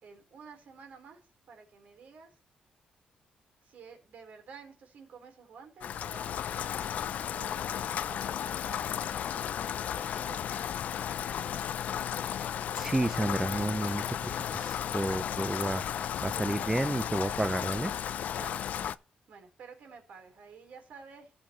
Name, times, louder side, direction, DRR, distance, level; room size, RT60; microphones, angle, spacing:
voice 1, 0.0-2.4 3.6-6.5 7.3-9.0 9.6-10.9 11.2-11.7 18.2-18.6 19.3-21.3, right 5 dB, 65° right, 3.9 m, -51 dB
Rain, 5.8-19.0, left 9 dB, 65° left, 0.5 m, -34 dB
voice 2, 12.8-17.9, right 1 dB, 10° right, 0.3 m, -31 dB
17.0 x 6.0 x 3.1 m
cardioid pair, 140°, 3 cm